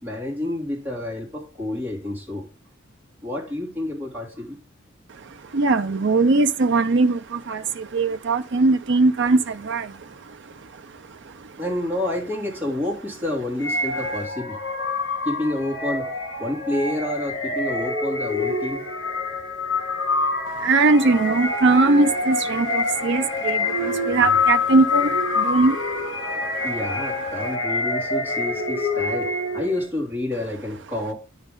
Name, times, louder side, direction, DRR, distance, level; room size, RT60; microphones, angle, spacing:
voice 1, 0.0-2.4 3.2-4.6 11.6-14.6 15.2-16.1 16.4-18.8 26.6-31.1, left 1 dB, 10° right, 2.9 m, -29 dB
voice 2, 5.5-7.2 7.5-7.6 7.9-9.9 20.6-23.6 24.1-25.1 25.4-25.8, right 3 dB, 60° right, 0.6 m, -19 dB
sound 1, 13.6-29.8, left 3 dB, 80° left, 1.9 m, -26 dB
10.0 x 5.3 x 3.8 m
head